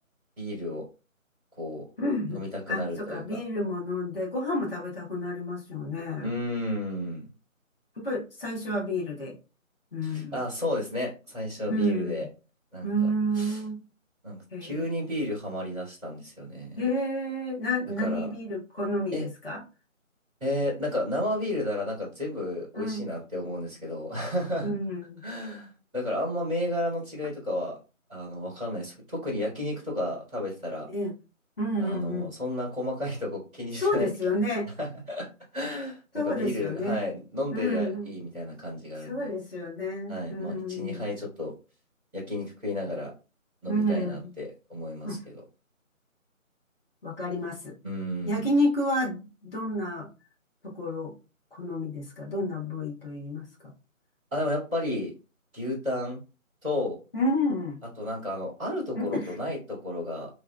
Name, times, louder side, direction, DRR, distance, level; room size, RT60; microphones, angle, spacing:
voice 1, 0.4-0.8 1.6-1.8 2.3-3.4 6.2-7.2 10.0-12.3 12.7-12.9 13.3-13.6 14.2-16.8 18.0-18.3 19.1-19.2 20.4-24.7 25.2-27.8 28.1-30.9 31.8-34.1 34.8-35.3 35.5-36.0 36.2-39.3 40.1-41.5 42.1-43.1 43.6-45.3 47.8-48.5 54.3-55.1 55.5-56.2 56.6-57.0 58.0-60.3, left 1 dB, 5° right, -19 dB, 1.7 m, -32 dB
voice 2, 2.0-2.4 2.7-6.3 8.0-9.4 9.9-10.4 11.7-12.3 12.8-13.8 14.5-14.8 16.8-19.6 22.7-23.0 24.6-25.2 30.9-31.1 31.6-32.3 33.8-34.7 36.1-37.0 37.5-38.1 39.0-41.0 43.7-44.3 45.0-45.2 47.0-47.7 48.2-50.1 50.6-51.1 51.5-53.4 57.1-57.8 58.9-59.3, left 1 dB, 40° left, -4 dB, 1.4 m, -30 dB
3.7 x 3.5 x 2.3 m, 0.31 s
figure-of-eight pair, 165°, 41 cm